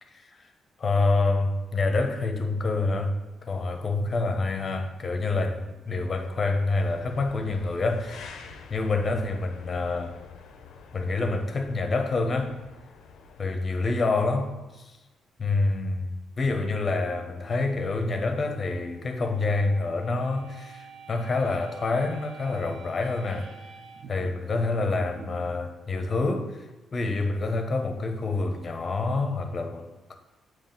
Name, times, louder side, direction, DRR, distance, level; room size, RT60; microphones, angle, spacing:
voice 1, 0.8-8.4 8.7-10.2 10.9-12.5 13.4-15.0 15.4-23.5 24.1-26.7 26.9-30.2, left 3 dB, 40° left, 5 dB, 0.9 m, -27 dB
sound 1, 6.7-13.5, left 5 dB, 75° left, 0.6 m, -47 dB
sound 2, 16.4-25.6, right 5 dB, 65° right, 0.6 m, -48 dB
7.2 x 3.1 x 5.9 m, 1.1 s
cardioid pair, 90°, 0 cm